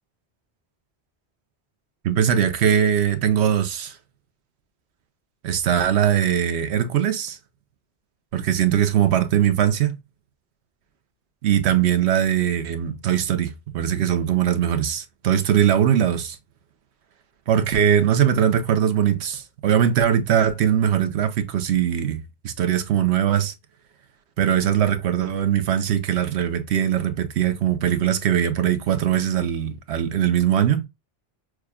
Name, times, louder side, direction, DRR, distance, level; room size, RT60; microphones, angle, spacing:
voice 1, 2.0-4.0 5.4-7.4 8.3-10.0 11.4-16.4 17.5-23.5 24.4-30.9, right 9 dB, 85° right, 1.0 m, -21 dB
6.1 x 2.3 x 2.3 m
omnidirectional pair, 1.1 m